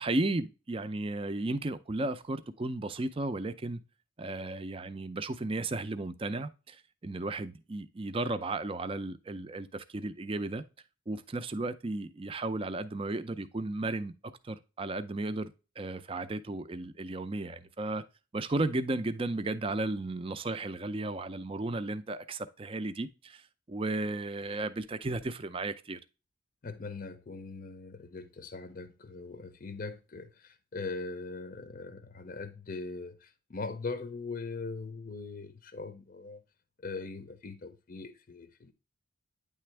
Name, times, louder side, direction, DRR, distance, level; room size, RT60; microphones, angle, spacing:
voice 1, 0.0-3.8 4.2-10.6 11.1-14.1 14.4-18.0 18.3-23.4 23.7-26.0, right 2 dB, 25° right, 0.4 m, -34 dB
voice 2, 26.6-36.4 36.8-38.7, left 3 dB, 40° left, 0.6 m, -41 dB
9.3 x 3.4 x 3.2 m
head